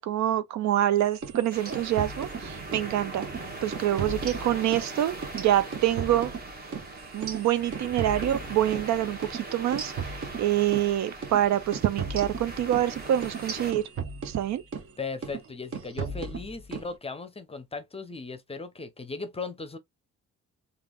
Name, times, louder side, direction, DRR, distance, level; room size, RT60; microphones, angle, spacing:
voice 1, 0.0-3.3 3.6-6.3 7.1-13.9 14.2-14.6, right 12 dB, 65° right, 0.5 m, -26 dB
sound 1, 1.1-2.9 3.2-3.4 3.7-4.9 5.2-8.9 9.2-9.4 9.7-10.9 11.2-11.4 11.7-14.9 15.2-15.5 15.7-16.9, right 5 dB, 50° right, 0.9 m, -36 dB
sound 2, 1.5-13.7, right 2 dB, 30° right, 1.3 m, -40 dB
voice 2, 15.0-19.8, left 4 dB, 20° left, 0.6 m, -37 dB
3.3 x 2.5 x 2.3 m
cardioid pair, 90°, 30 cm